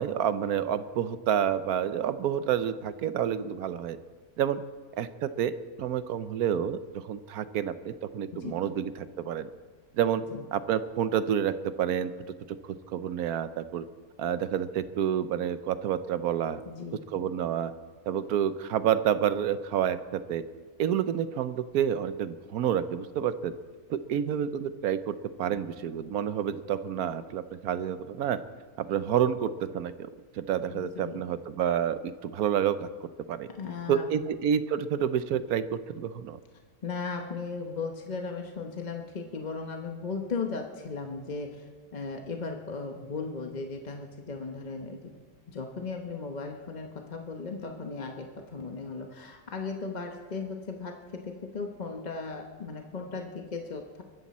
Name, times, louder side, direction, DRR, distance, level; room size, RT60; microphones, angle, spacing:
voice 1, 0.0-4.0 4.4-4.6 5.0-6.8 7.0-8.9 9.2-9.5 10.0-10.2 10.5-12.1 12.6-13.8 14.2-16.6 17.1-17.7 18.1-20.4 20.8-23.5 23.9-28.4 28.8-30.1 30.4-32.9 33.3-33.5 33.9-36.4, right 9 dB, 80° right, 13 dB, 1.2 m, -29 dB
voice 2, 8.3-8.7 10.3-10.4 16.6-17.0 30.7-31.2 33.5-34.3 36.8-45.2 45.5-54.0, left 4 dB, 35° left, 3 dB, 1.0 m, -37 dB
23.0 x 13.5 x 4.2 m, 1.4 s
omnidirectional pair, 1.6 m